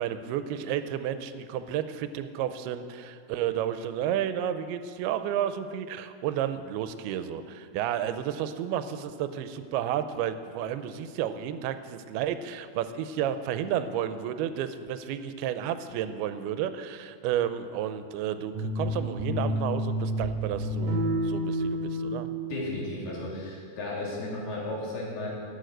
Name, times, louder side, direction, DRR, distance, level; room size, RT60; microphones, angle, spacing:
voice 1, 0.0-22.3, right 10 dB, 90° right, 11 dB, 2.6 m, -31 dB
sound 1, 18.5-20.3 20.5-22.1, equal, 60° right, 2.8 m, -29 dB
voice 2, 22.5-25.3, left 2 dB, 85° left, -5 dB, 4.9 m, -34 dB
11.5 x 9.0 x 7.9 m, 2.2 s
omnidirectional pair, 4.4 m